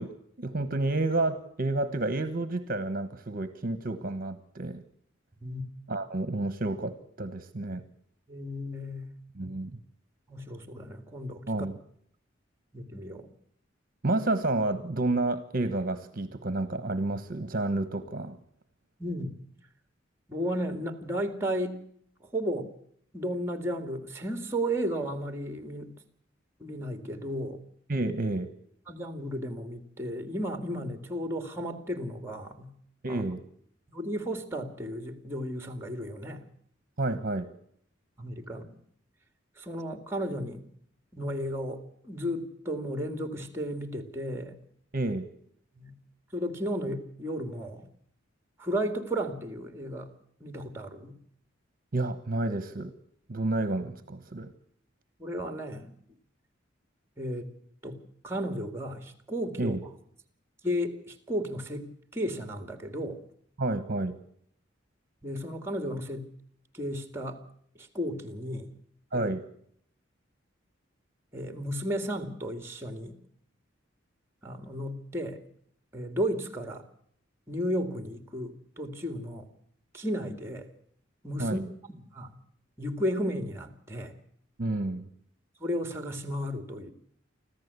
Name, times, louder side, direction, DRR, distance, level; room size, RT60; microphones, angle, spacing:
voice 1, 0.0-4.8 5.9-7.8 9.4-9.8 11.5-11.8 14.0-18.4 27.9-28.5 33.0-33.4 37.0-37.5 44.9-45.3 51.9-52.9 53.3-54.5 59.6-59.8 63.6-64.1 69.1-69.4 81.4-81.6 84.6-85.1, right 2 dB, 50° right, 12 dB, 1.2 m, -30 dB
voice 2, 8.3-9.1 10.3-11.4 12.7-13.3 19.0-19.3 20.3-21.8 22.3-22.7 23.1-25.9 26.6-27.6 28.9-32.7 33.1-33.2 33.9-36.5 38.2-38.6 39.6-40.6 41.1-44.6 45.7-45.9 46.3-47.9 48.6-50.1 50.4-51.1 55.2-55.9 57.2-57.5 57.8-58.0 58.2-59.8 60.6-63.2 65.2-66.3 66.7-67.4 67.8-68.7 69.1-69.3 71.3-73.2 74.4-75.4 75.9-76.8 77.5-79.5 79.9-80.7 81.2-81.6 81.9-82.4 82.8-84.1 85.6-86.9, equal, 15° right, 8 dB, 2.2 m, -34 dB
25.5 x 14.5 x 8.2 m, 0.68 s
head